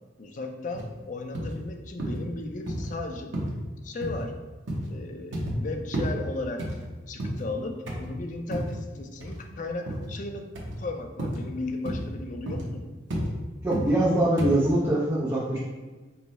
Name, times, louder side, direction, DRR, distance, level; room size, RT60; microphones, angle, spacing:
voice 1, 0.2-3.3 3.8-4.4 4.9-6.7 7.1-10.5 10.8-12.9, left 2 dB, 40° left, 4 dB, 0.4 m, -35 dB
sound 1, 0.7-0.9 1.3-1.6 2.0-2.2 2.7-2.9 3.3-3.6 4.0-4.2 4.7-4.9 5.3-5.6 5.9-6.2 6.6-7.5 7.9-8.1 8.5-8.8 9.2-9.4 9.9-10.1 10.6-10.8 11.2-11.4 11.9-12.1 12.5-12.7 13.1-13.3 13.7-13.9 14.4-14.6, right 1 dB, 80° right, 0.9 m, -31 dB
voice 2, 13.6-15.6, right 1 dB, 15° right, -6 dB, 0.5 m, -23 dB
5.5 x 2.1 x 4.0 m, 1.3 s
head